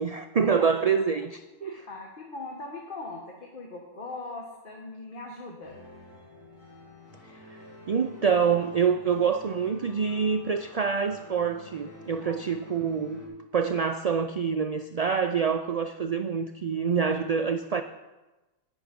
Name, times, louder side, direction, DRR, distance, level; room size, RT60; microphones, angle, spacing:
voice 1, 0.0-1.8 7.9-13.2 13.5-17.8, right 6 dB, 85° right, 8 dB, 0.3 m, -26 dB
voice 2, 1.6-5.8 12.2-12.7, left 3 dB, 45° left, 0 dB, 1.4 m, -40 dB
sound 1, 5.6-13.3, left 2 dB, 90° left, 5.2 m, -47 dB
18.0 x 6.0 x 5.2 m, 1.1 s
omnidirectional pair, 1.3 m